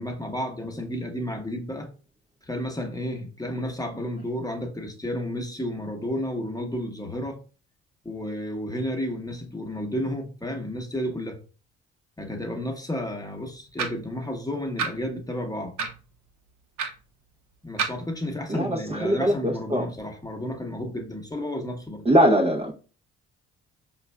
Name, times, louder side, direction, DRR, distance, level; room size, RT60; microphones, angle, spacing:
voice 1, 0.0-1.9 2.4-7.4 8.0-11.4 12.2-15.8 17.6-22.0, left 1 dB, 10° left, 1.0 m, -32 dB
sound 1, 13.8-14.1 14.8-14.9 15.8-16.0 16.8-16.9 17.8-18.0, right 5 dB, 60° right, 0.7 m, -28 dB
voice 2, 18.5-19.8 22.1-22.7, equal, 20° right, 0.7 m, -21 dB
4.9 x 2.4 x 2.3 m
hypercardioid pair, 50°, 32 cm